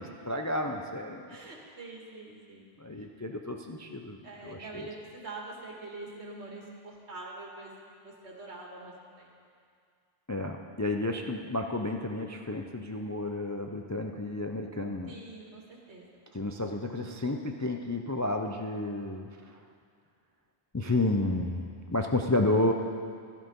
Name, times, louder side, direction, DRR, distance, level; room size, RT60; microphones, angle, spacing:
voice 1, 0.0-1.4 2.8-4.2 4.4-4.7 10.3-15.1 16.3-19.3 20.7-22.7, left 2 dB, 25° left, 3 dB, 0.4 m, -31 dB
voice 2, 1.3-2.7 3.0-3.1 4.2-9.3 15.1-16.1, right 2 dB, 70° right, -2 dB, 2.1 m, -45 dB
13.0 x 11.5 x 5.4 m, 2.3 s
omnidirectional pair, 1.2 m